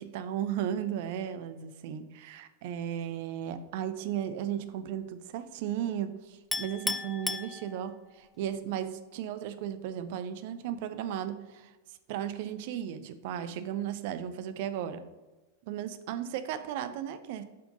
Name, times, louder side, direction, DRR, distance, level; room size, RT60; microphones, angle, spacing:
voice 1, 0.0-11.7 12.1-15.0 15.7-17.4, right 10 dB, 50° right, 11 dB, 0.5 m, -35 dB
Chink clink, 6.5-8.2, left 3 dB, 10° left, 0.3 m, -34 dB
7.5 x 5.8 x 3.8 m, 1.2 s
figure-of-eight pair, 90°, 0 cm